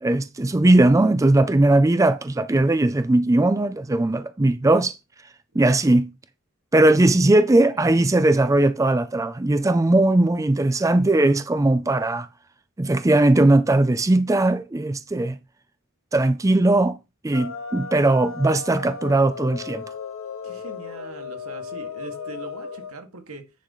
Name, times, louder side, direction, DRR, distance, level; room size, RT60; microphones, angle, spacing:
voice 1, 0.0-5.0 5.5-6.1 6.7-12.3 12.8-15.4 16.1-17.0 17.2-19.8, right 2 dB, 15° right, 0.4 m, -19 dB
sound 1, 17.3-22.9, left 5 dB, 85° left, 1.5 m, -35 dB
voice 2, 20.4-23.5, right 2 dB, 90° right, 2.0 m, -41 dB
9.9 x 3.8 x 5.6 m
head